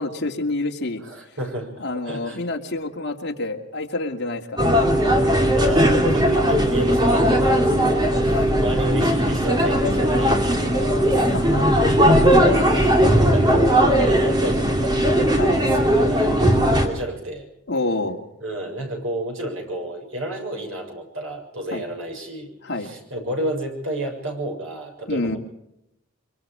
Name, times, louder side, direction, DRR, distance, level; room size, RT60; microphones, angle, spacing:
voice 1, 0.0-1.0 1.8-4.6 8.3-8.5 11.2-12.0 15.4-15.6 17.7-18.2 21.7-21.8 22.6-22.9 25.1-25.4, left 2 dB, 50° left, 1 dB, 2.6 m, -28 dB
voice 2, 1.0-2.4 5.0-11.3 12.1-15.1 15.7-17.5 18.4-22.5 22.8-25.4, right 1 dB, 65° right, 1 dB, 6.9 m, -31 dB
sound 1, 4.6-16.9, equal, 20° right, 2.7 m, -18 dB
24.5 x 24.0 x 5.0 m, 0.82 s
head